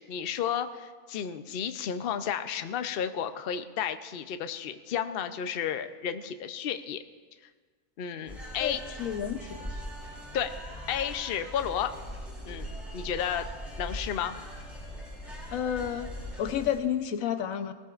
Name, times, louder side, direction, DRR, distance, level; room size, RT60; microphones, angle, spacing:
voice 1, 0.0-7.0 8.0-8.8 10.3-10.5 10.9-11.9 12.5-13.5 13.8-14.3, left 8 dB, 55° left, 9 dB, 0.7 m, -32 dB
sound 1, 8.3-16.8, equal, ahead, 3.5 m, -41 dB
voice 2, 8.6-9.7 15.5-16.1 16.4-17.7, left 9 dB, 85° left, 10 dB, 1.1 m, -30 dB
19.0 x 17.5 x 2.4 m, 1.5 s
omnidirectional pair, 1.4 m